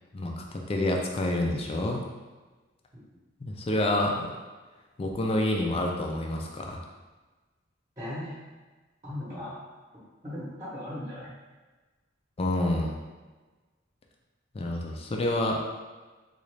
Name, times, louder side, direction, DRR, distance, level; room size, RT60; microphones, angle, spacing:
voice 1, 0.1-2.1 3.4-4.3 5.0-6.8 12.4-13.0 14.5-15.6, left 1 dB, 30° left, 1 dB, 0.4 m, -28 dB
voice 2, 8.0-8.3 9.0-9.6 10.2-11.3, left 1 dB, 20° right, -8 dB, 0.9 m, -37 dB
3.8 x 2.4 x 3.2 m, 1.3 s
head